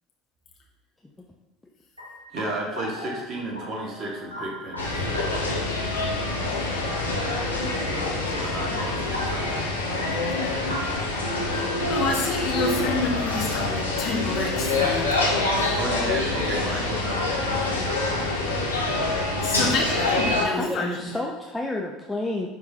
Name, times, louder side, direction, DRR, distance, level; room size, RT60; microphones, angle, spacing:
sound 1, 2.0-21.2, left 1 dB, 85° right, 1.4 m, -40 dB
voice 1, 2.3-5.3 7.9-9.6 15.8-18.1, right 1 dB, 40° right, -2 dB, 1.7 m, -33 dB
sound 2, 4.8-20.5, left 2 dB, 80° left, 0.9 m, -26 dB
voice 2, 11.4-15.1 15.5-15.8 16.7-16.8 19.4-21.2, left 3 dB, 45° left, -2 dB, 1.5 m, -29 dB
voice 3, 20.5-22.5, left 2 dB, 10° left, -1 dB, 0.7 m, -30 dB
9.7 x 3.8 x 3.0 m, 1.1 s
figure-of-eight pair, 65°, 0 cm